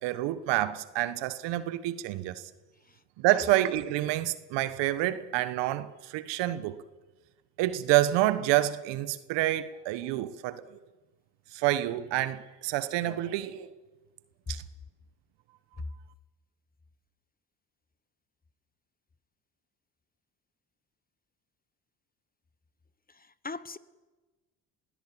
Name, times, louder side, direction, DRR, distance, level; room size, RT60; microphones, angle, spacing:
voice 1, 0.0-2.5 3.2-6.8 7.6-10.8 11.5-13.7 14.5-14.6, right 15 dB, 75° right, 1.4 m, -28 dB
voice 2, 23.1-23.8, left 4 dB, 20° left, 1.2 m, -41 dB
21.5 x 16.5 x 8.8 m
hypercardioid pair, 60°, 43 cm